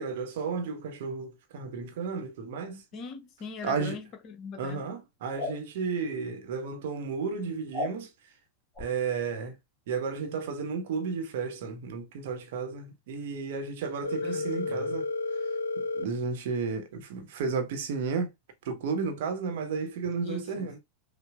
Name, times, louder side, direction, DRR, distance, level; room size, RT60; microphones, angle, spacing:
voice 1, 0.0-2.8 3.6-4.0 4.6-8.1 8.8-9.6 9.9-15.1 15.9-18.3 18.6-20.8, right 5 dB, 55° right, 0.8 m, -33 dB
voice 2, 2.9-4.9 14.2-15.0 20.2-20.8, left 5 dB, 35° left, 0.8 m, -41 dB
sound 1, 5.3-5.6 7.7-8.0 8.7-8.9, left 2 dB, 10° left, 1.1 m, -33 dB
Telephone, 14.0-16.0, left 3 dB, 75° left, 0.5 m, -31 dB
5.5 x 2.0 x 2.3 m
figure-of-eight pair, 90°, 0 cm